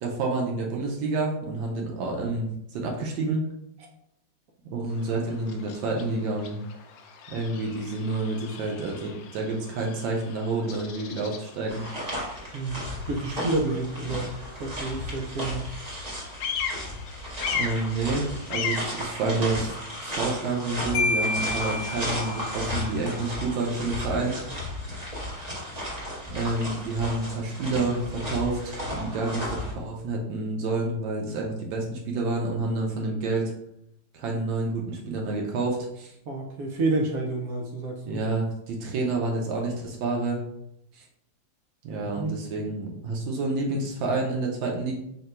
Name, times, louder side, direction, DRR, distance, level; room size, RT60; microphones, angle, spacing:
voice 1, 0.0-3.5 4.7-6.6 7.3-11.8 17.5-19.8 20.0-24.4 26.3-33.5 34.1-36.1 38.0-40.4 40.9-41.0 41.8-44.9, right 3 dB, 85° right, 0 dB, 1.4 m, -29 dB
Bird vocalization bird call bird song, 4.8-23.6, left 6 dB, 70° left, 0.9 m, -39 dB
sound 1, 11.7-29.7, left 1 dB, 30° right, 0.8 m, -34 dB
voice 2, 12.5-14.3 14.6-15.7 36.3-38.2 42.2-42.3, right 2 dB, 70° right, 0 dB, 0.8 m, -29 dB
Marimba xylophone, 20.9-22.7, left 3 dB, 35° left, 0.6 m, -28 dB
3.9 x 2.2 x 4.2 m, 0.78 s
omnidirectional pair, 2.1 m